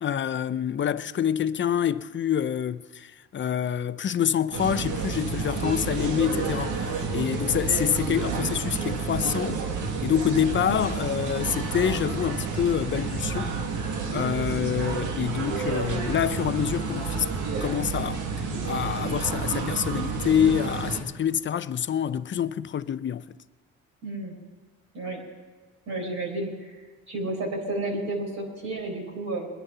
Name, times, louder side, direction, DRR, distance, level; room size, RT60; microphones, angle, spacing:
voice 1, 0.0-9.6 10.0-13.5 14.1-17.3 17.6-18.2 18.6-23.4, left 9 dB, 40° left, 0.6 m, -26 dB
sound 1, 4.5-21.0, right 5 dB, 85° right, 1.8 m, -30 dB
voice 2, 24.0-24.3 24.9-25.2 25.9-26.8 27.1-29.5, right 2 dB, 65° right, 4.4 m, -31 dB
22.0 x 9.9 x 5.6 m
cardioid pair, 85°, 29 cm